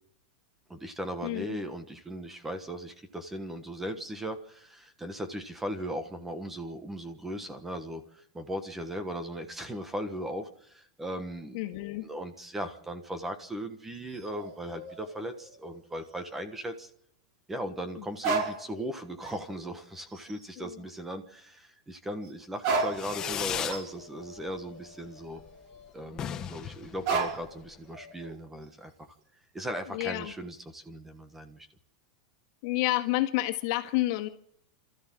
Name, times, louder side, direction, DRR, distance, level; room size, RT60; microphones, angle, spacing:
voice 1, 0.7-11.6 12.0-16.9 17.5-25.4 25.9-28.9 29.5-31.7, equal, 5° right, 9 dB, 1.3 m, -38 dB
voice 2, 1.2-1.6 11.5-12.1 18.0-18.1 20.6-20.8 29.9-30.3 32.6-34.3, left 17 dB, 50° left, 6 dB, 1.9 m, -30 dB
sound 1, 13.9-16.0 16.3-16.4 18.2-18.9 19.2-19.7 20.1-20.5 22.2-22.3 22.6-25.9 27.1-27.6 27.9-28.6, right 4 dB, 45° right, 5.4 m, -35 dB
Fireworks, 22.9-23.9 24.2-24.8 25.0-25.1 25.4-25.5 25.7-25.8 26.1-27.7, left 9 dB, 20° left, 1.1 m, -36 dB
28.0 x 13.5 x 7.6 m, 0.70 s
supercardioid pair, 165°, 3 cm